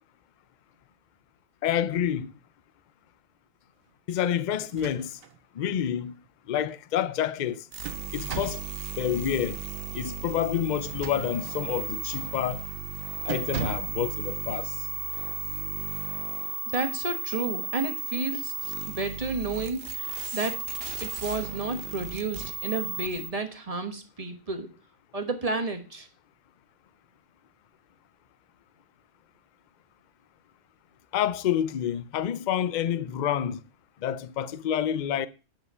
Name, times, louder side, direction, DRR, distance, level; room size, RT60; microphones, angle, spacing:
voice 1, 1.6-2.3 4.1-5.2 5.5-6.2 6.5-7.7 8.1-8.6 9.0-9.6 9.9-12.6 13.2-14.9 31.1-33.6 34.0-35.3, left 10 dB, 75° left, 0.4 m, -28 dB
sound 1, 4.6-5.4 5.8-5.9 7.4-8.7 10.7-11.6 12.1-12.4 12.7-12.9 13.3-14.0, right 9 dB, 75° right, 1.2 m, -38 dB
sound 2, 7.7-23.3, right 6 dB, 50° right, 1.0 m, -35 dB
voice 2, 16.7-18.5 18.9-20.1 20.3-20.5 21.0-24.7 25.1-26.1, right 3 dB, 25° right, 1.2 m, -31 dB
8.8 x 5.5 x 5.5 m
omnidirectional pair, 1.5 m